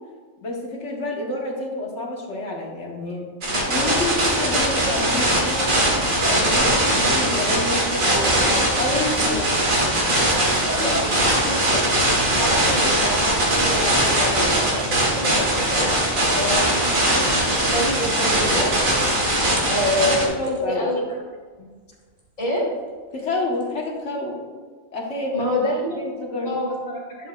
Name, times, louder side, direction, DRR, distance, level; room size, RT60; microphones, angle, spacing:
voice 1, 0.4-3.2 3.6-5.7 6.2-9.6 16.3-16.7 19.5-19.7 20.2-20.9 21.6-21.7 23.1-24.4 24.9-25.5 26.0-26.6, left 2 dB, 60° left, -2 dB, 1.7 m, -28 dB
sound 1, 3.4-20.3, right 1 dB, 80° right, 2.0 m, -20 dB
sound 2, 9.2-10.0 10.3-15.0 15.2-20.8 21.0-24.0, right 1 dB, 45° right, 2.0 m, -39 dB
voice 2, 10.7-12.0 12.3-16.0 16.3-17.1 17.4-18.7 19.6-21.0 22.4-22.7 25.3-26.1 26.4-27.3, left 1 dB, 75° left, -6 dB, 2.2 m, -27 dB
10.5 x 7.4 x 2.4 m, 1.5 s
omnidirectional pair, 1.4 m